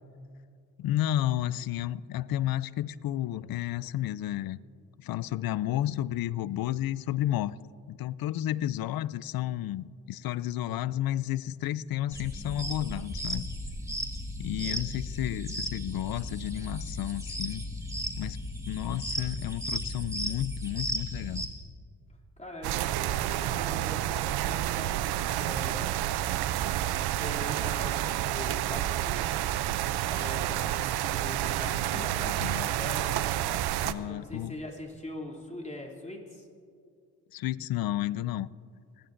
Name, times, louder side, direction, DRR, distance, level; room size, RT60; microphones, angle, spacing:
voice 1, 0.8-4.6 5.0-7.6 7.9-13.5 14.4-17.6 18.2-18.4 18.7-21.4 31.9-32.7 33.8-34.5 37.3-38.5, left 13 dB, 65° left, 0.5 m, -32 dB
sound 1, 12.1-21.5, equal, 10° right, 1.9 m, -35 dB
voice 2, 22.4-26.0 26.7-29.6 30.1-33.3 33.9-36.5, left 1 dB, 20° left, 2.8 m, -43 dB
sound 2, 22.6-33.9, right 13 dB, 80° right, 0.5 m, -29 dB
30.0 x 11.5 x 2.6 m
supercardioid pair, 55°, 38 cm